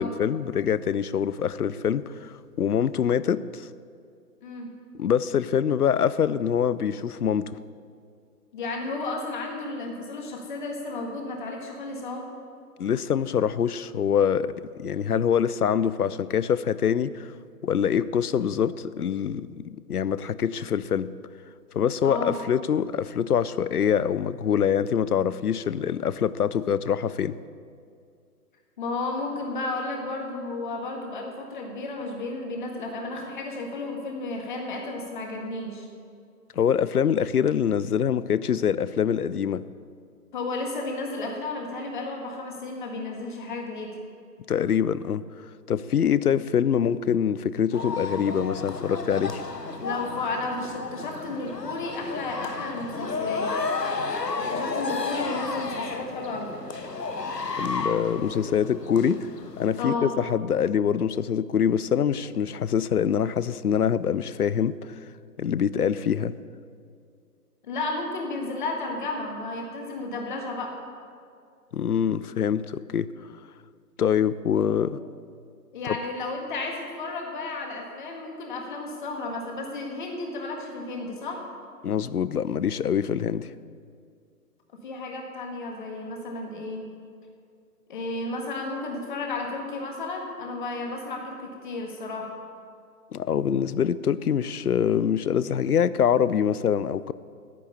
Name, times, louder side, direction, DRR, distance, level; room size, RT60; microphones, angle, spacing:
voice 1, 0.0-3.7 5.0-7.5 12.8-14.5 14.8-17.3 17.6-21.1 21.7-27.4 36.6-39.6 44.5-45.2 45.7-49.4 57.6-59.3 59.6-64.9 65.4-66.3 71.7-73.1 74.0-75.0 75.8-75.9 81.8-83.5 93.1-97.1, left 8 dB, 70° left, 17 dB, 0.6 m, -24 dB
voice 2, 4.4-4.7 8.5-12.3 22.0-22.4 28.8-35.9 40.3-44.0 49.8-53.5 54.4-56.6 59.8-60.1 67.6-70.7 74.5-74.7 75.7-81.4 84.8-86.8 87.9-92.3, left 2 dB, 30° left, 1 dB, 1.7 m, -33 dB
sound 1, 47.7-59.8, left 4 dB, 90° left, 1.1 m, -32 dB
10.5 x 9.3 x 6.8 m, 2.3 s
figure-of-eight pair, 140°, 47 cm